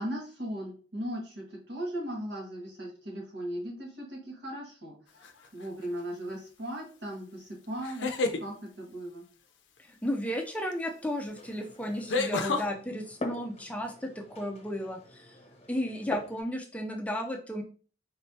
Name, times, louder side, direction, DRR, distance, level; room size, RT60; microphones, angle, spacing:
voice 1, 0.0-5.0 5.5-8.1 8.4-9.2, equal, 65° right, -2 dB, 1.7 m, -37 dB
sound 1, 5.2-5.7 7.8-8.4 10.7-10.8 12.1-12.7, left 3 dB, 80° left, 0.5 m, -29 dB
voice 2, 9.8-15.4 15.7-17.6, equal, 10° left, 2 dB, 0.4 m, -34 dB
Glass, 11.3-16.4, left 2 dB, 35° left, 0.7 m, -44 dB
4.2 x 3.1 x 2.8 m, 0.39 s
head